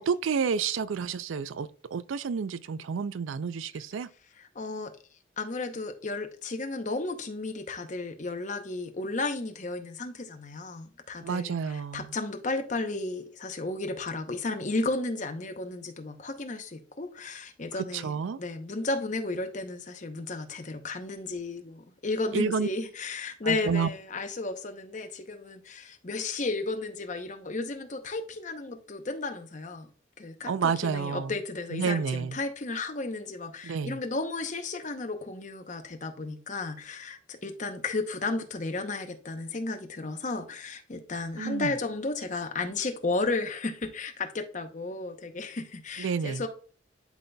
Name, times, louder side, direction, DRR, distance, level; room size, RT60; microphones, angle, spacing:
voice 1, 0.0-4.1 11.2-12.1 17.8-18.4 22.3-22.7 23.4-23.9 30.5-31.3 31.7-32.4 33.6-34.0 41.4-41.7 46.0-46.4, right 6 dB, 90° right, 0.4 m, -30 dB
voice 2, 4.4-4.9 5.4-29.9 30.2-46.5, left 3 dB, 40° left, 0.7 m, -33 dB
11.0 x 4.0 x 2.2 m
head